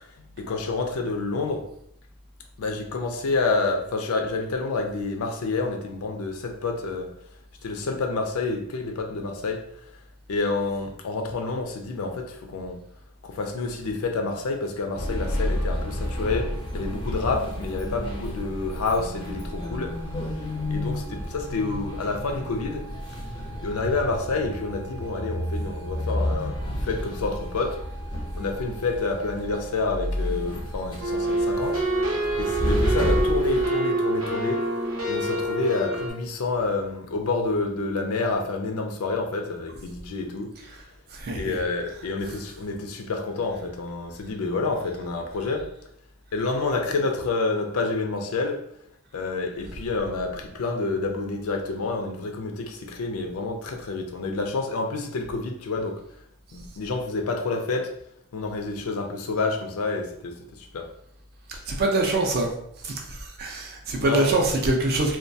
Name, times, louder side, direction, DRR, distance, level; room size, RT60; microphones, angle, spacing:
voice 1, 0.4-1.7 2.6-7.1 7.6-9.7 10.3-12.8 13.2-20.0 20.7-22.9 23.6-27.8 28.1-31.8 32.4-34.6 35.1-40.5 41.3-45.7 46.3-48.6 49.1-56.0 56.5-57.9 58.3-60.9 64.0-64.3, left 3 dB, 85° left, 3 dB, 0.4 m, -28 dB
sound 1, 15.0-33.7, left 1 dB, 20° left, 0.4 m, -31 dB
sound 2, 31.0-36.1, right 1 dB, 80° right, 0.7 m, -26 dB
voice 2, 41.2-41.6 61.7-62.5 62.8-65.2, right 2 dB, 45° right, 1 dB, 0.4 m, -24 dB
2.2 x 2.1 x 2.6 m, 0.72 s
head